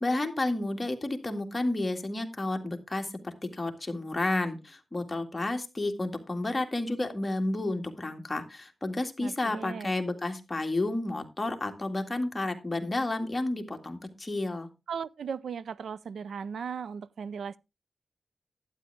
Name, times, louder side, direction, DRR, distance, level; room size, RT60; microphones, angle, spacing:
voice 1, 0.0-14.7, left 2 dB, 20° left, 2.0 m, -31 dB
voice 2, 9.2-9.9 14.9-17.6, right 6 dB, 85° right, 0.5 m, -37 dB
12.0 x 9.6 x 3.4 m
wide cardioid pair, 125°, 0 cm